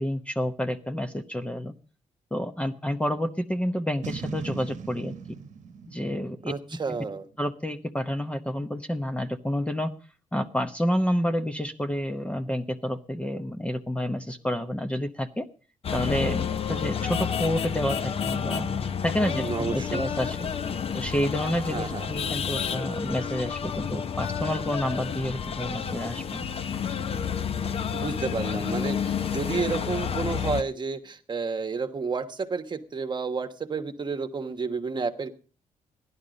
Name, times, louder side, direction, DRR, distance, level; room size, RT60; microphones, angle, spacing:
voice 1, 0.0-1.7 2.3-5.1 5.9-6.5 6.9-7.0 7.4-9.9 10.3-15.5 15.9-18.7 19.0-20.5 20.9-26.4, equal, 10° left, 8 dB, 0.9 m, -29 dB
Boom, 4.0-7.4, right 6 dB, 65° right, 1.0 m, -39 dB
voice 2, 6.5-7.3 19.3-20.0 21.7-22.1 27.9-35.3, right 4 dB, 35° right, 9 dB, 1.3 m, -31 dB
sound 1, 15.8-30.6, left 7 dB, 45° left, 0.8 m, -30 dB
15.0 x 11.0 x 5.2 m, 0.39 s
cardioid pair, 100°, 13 cm